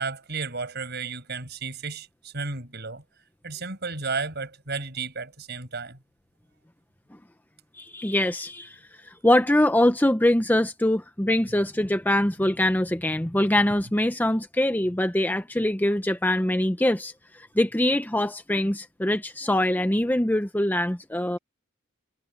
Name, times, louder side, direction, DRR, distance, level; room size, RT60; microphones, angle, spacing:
voice 1, 0.0-3.0 3.4-6.0, right 4 dB, 50° right, 5.7 m, -33 dB
voice 2, 7.7-21.4, left 1 dB, 10° left, 0.7 m, -23 dB
head